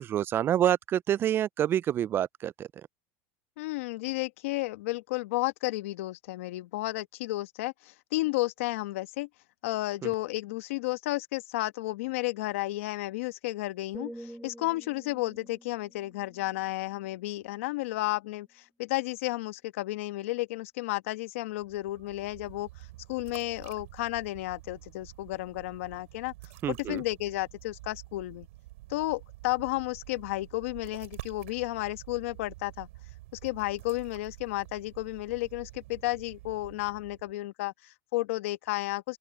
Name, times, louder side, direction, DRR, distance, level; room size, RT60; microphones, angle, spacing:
voice 1, 0.0-2.7 26.6-27.0, right 10 dB, 30° right, 0.3 m, -27 dB
voice 2, 3.6-9.3 9.6-26.3 26.7-28.5 28.9-32.9 33.4-39.2, left 19 dB, 80° left, 1.3 m, -32 dB
sound 1, 13.9-17.9 18.3-18.6, right 1 dB, 5° right, 4.7 m, -49 dB
sound 2, 21.5-37.4, right 19 dB, 80° right, 6.2 m, -49 dB
open air
supercardioid pair, 115°, 7 cm